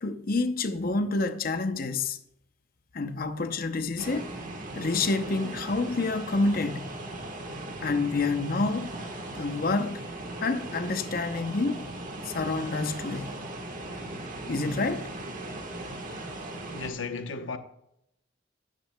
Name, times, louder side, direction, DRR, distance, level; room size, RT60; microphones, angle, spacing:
voice 1, 0.0-2.2 2.9-4.3 4.7-6.9 7.8-8.9 9.3-10.0 10.4-11.8 12.2-13.4 14.5-15.1, left 3 dB, 50° left, 0.7 m, -28 dB
sound 1, 4.0-16.9, right 2 dB, 45° right, 1.3 m, -38 dB
voice 2, 16.7-17.6, left 4 dB, 75° left, 0.9 m, -34 dB
13.0 x 10.5 x 2.2 m
head